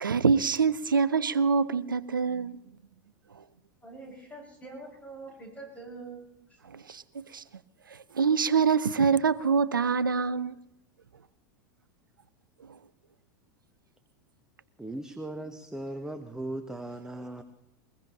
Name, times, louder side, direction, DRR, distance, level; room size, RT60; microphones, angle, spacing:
voice 1, 0.0-2.6 6.7-7.4 7.9-10.6, right 5 dB, 80° right, 0.5 m, -25 dB
voice 2, 3.8-6.2 6.5-6.6, right 3 dB, 15° left, 7.7 m, -44 dB
voice 3, 14.8-17.4, right 1 dB, 5° right, 1.0 m, -38 dB
22.0 x 21.0 x 2.9 m
figure-of-eight pair, 85°, 11 cm